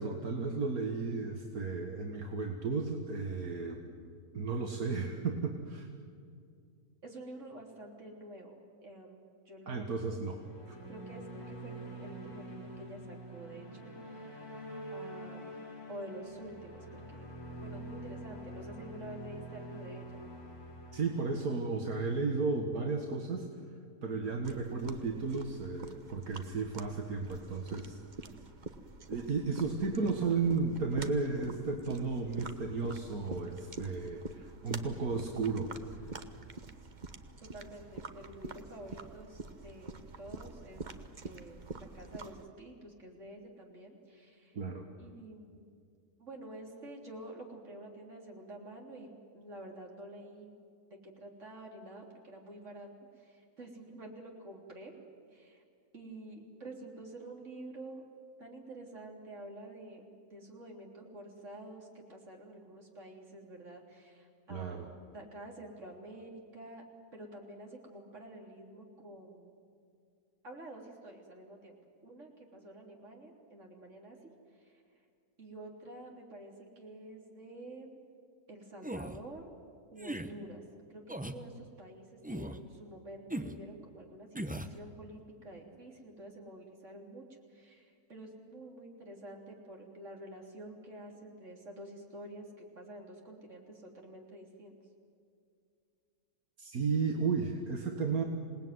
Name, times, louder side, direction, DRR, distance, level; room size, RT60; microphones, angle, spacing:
voice 1, 0.0-3.9 4.3-5.9 9.7-10.4 10.7-10.8 20.9-23.5 24.0-28.0 29.1-35.7 44.5-44.9 64.5-64.9 96.6-98.2, right 4 dB, 75° right, 2 dB, 2.2 m, -34 dB
voice 2, 7.0-9.2 9.5-9.9 10.7-14.4 14.9-15.6 15.9-17.3 17.6-20.2 27.9-28.3 37.4-40.8 41.2-41.6 41.9-44.6 45.0-45.7 46.2-49.1 49.3-50.5 51.0-52.9 53.2-54.9 55.3-55.6 55.9-58.0 58.4-64.8 65.1-66.8 67.1-69.5 70.4-71.7 72.0-74.8 75.4-78.0 78.5-79.5 79.9-94.8, right 1 dB, 55° right, 0 dB, 3.9 m, -49 dB
sound 1, 10.1-22.6, right 1 dB, 80° left, 5.8 m, -46 dB
sound 2, 24.4-42.4, right 3 dB, 35° right, 1.2 m, -46 dB
sound 3, 78.8-79.2 80.0-80.3 81.1-81.4 82.2-82.6 83.3-83.6 84.3-84.7, right 1 dB, 5° right, 0.9 m, -38 dB
27.0 x 19.0 x 9.5 m, 2.4 s
omnidirectional pair, 1.6 m